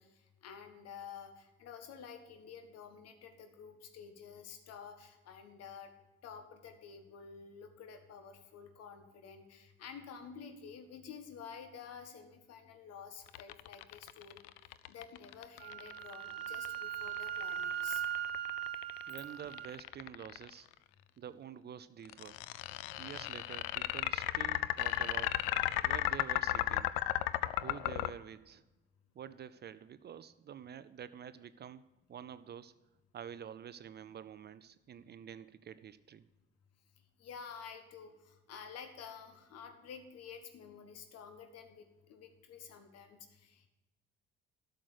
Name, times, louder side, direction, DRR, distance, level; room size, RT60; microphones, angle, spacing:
voice 1, 0.0-5.9 6.2-14.5 14.9-18.0 37.2-43.7, left 6 dB, 60° left, 7 dB, 1.6 m, -50 dB
sound 1, 13.3-20.5 22.1-28.1, left 16 dB, 75° left, 0.5 m, -34 dB
Wind instrument woodwind instrument, 15.6-19.8, right 11 dB, 85° right, 0.7 m, -39 dB
voice 2, 19.1-20.7 21.2-22.4 23.0-25.4 25.8-26.9 27.5-28.6 29.2-31.8 32.1-32.7 33.1-36.2, right 9 dB, 35° right, 15 dB, 0.5 m, -48 dB
12.5 x 6.5 x 6.5 m, 1.1 s
hypercardioid pair, 55°, 29 cm